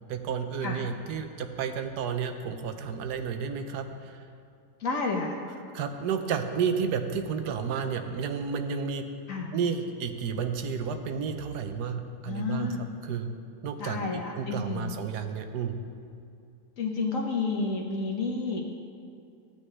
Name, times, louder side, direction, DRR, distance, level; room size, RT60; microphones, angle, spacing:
voice 1, 0.1-3.9 5.7-9.1 9.5-12.7 13.0-13.3 13.6-14.0 14.3-15.7, right 6 dB, 90° right, 7 dB, 1.3 m, -31 dB
voice 2, 4.8-5.4 9.3-9.5 12.3-12.8 13.8-14.9 16.8-18.6, left 3 dB, 60° left, 1 dB, 1.2 m, -30 dB
14.5 x 8.4 x 3.3 m, 2.5 s
omnidirectional pair, 1.7 m